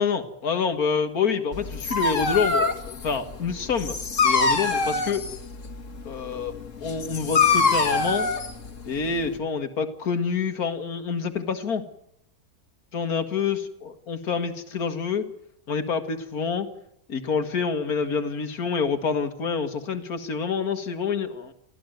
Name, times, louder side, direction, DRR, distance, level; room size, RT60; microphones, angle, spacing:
voice 1, 0.0-5.2 6.1-6.5 6.8-8.3 8.9-11.8 12.9-13.6 14.1-15.3 15.7-16.7 17.1-21.5, left 5 dB, 70° left, 7 dB, 2.3 m, -27 dB
Dog, 1.5-9.4, left 4 dB, 55° left, 2.3 m, -25 dB
29.0 x 14.5 x 9.3 m, 0.75 s
omnidirectional pair, 1.6 m